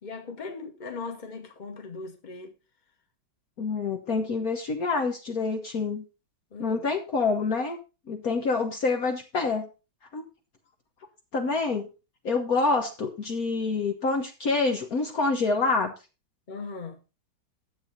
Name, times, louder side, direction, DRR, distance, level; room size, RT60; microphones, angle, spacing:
voice 1, 0.0-2.5 6.5-6.9 16.5-17.0, left 4 dB, 25° left, 1.6 m, -39 dB
voice 2, 3.6-6.0 6.6-7.8 8.1-9.7 10.1-10.2 11.3-11.9 12.2-15.9, left 4 dB, 55° left, 1.6 m, -27 dB
11.0 x 8.0 x 4.0 m
omnidirectional pair, 2.0 m